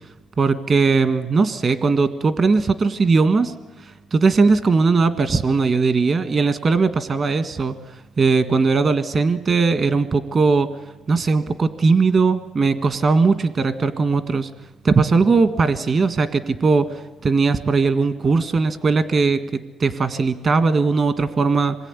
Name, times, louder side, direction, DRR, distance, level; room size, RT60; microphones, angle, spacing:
voice 1, 0.4-3.5 3.8-10.7 11.1-14.5 14.8-21.8, right 4 dB, 45° right, 11 dB, 1.7 m, -19 dB
27.0 x 21.5 x 9.9 m, 1.1 s
cardioid pair, 90°, 0 cm